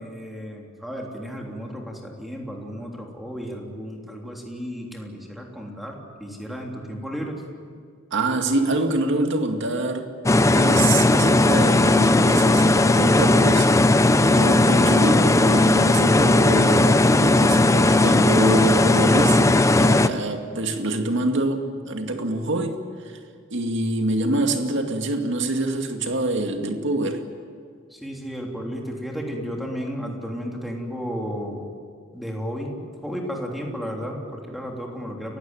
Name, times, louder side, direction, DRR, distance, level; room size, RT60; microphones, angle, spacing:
voice 1, 0.0-7.4 27.9-31.7 32.1-35.4, equal, ahead, 0 dB, 3.4 m, -33 dB
voice 2, 8.1-10.1 10.5-13.7 14.3-23.2 23.5-27.2, right 2 dB, 65° right, 5 dB, 2.3 m, -25 dB
sound 1, 10.3-20.1, left 2 dB, 15° left, 0.7 m, -17 dB
29.5 x 16.0 x 9.1 m, 2.1 s
head